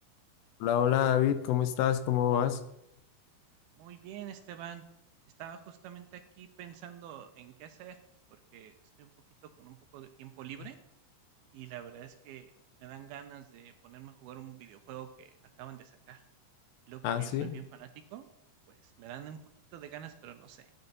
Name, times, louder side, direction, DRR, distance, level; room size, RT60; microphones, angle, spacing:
voice 1, 0.6-2.6 17.0-17.6, left 10 dB, 90° left, 10 dB, 2.9 m, -27 dB
voice 2, 3.8-4.8 5.4-8.0 8.3-9.1 9.4-10.8 11.5-12.5 12.8-15.3 15.6-16.2 16.9-18.3 18.7-19.4 19.7-20.7, right 10 dB, 80° right, 8 dB, 2.3 m, -47 dB
14.5 x 9.9 x 4.0 m, 0.81 s
omnidirectional pair, 5.0 m